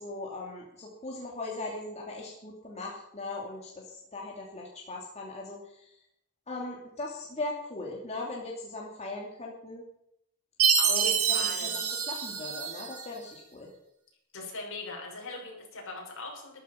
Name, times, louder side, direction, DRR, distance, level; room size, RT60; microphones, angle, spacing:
voice 1, 0.0-5.9 6.5-9.8 10.9-13.7, left 2 dB, 30° left, -2 dB, 2.8 m, -39 dB
Chime, 10.6-13.0, right 7 dB, 75° right, 2.9 m, -26 dB
voice 2, 10.8-11.7 14.3-16.6, left 2 dB, 65° left, 0 dB, 6.0 m, -40 dB
14.0 x 13.5 x 5.8 m, 0.77 s
head